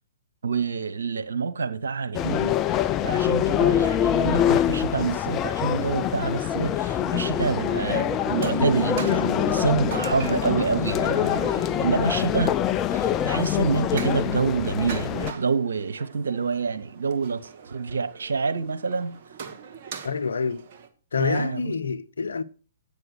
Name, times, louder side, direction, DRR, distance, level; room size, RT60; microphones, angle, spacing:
voice 1, 0.4-12.6 12.9-19.2 21.1-21.7, right 5 dB, 70° right, 1.1 m, -27 dB
sound 1, 2.1-15.3, left 10 dB, 25° left, 0.4 m, -25 dB
sound 2, 7.0-12.5, right 1 dB, 5° left, 3.3 m, -33 dB
sound 3, 7.3-20.9, right 6 dB, 45° right, 1.6 m, -42 dB
voice 2, 20.0-20.7 21.1-22.4, left 5 dB, 70° left, 0.7 m, -27 dB
8.8 x 7.0 x 6.4 m
figure-of-eight pair, 120°, 0 cm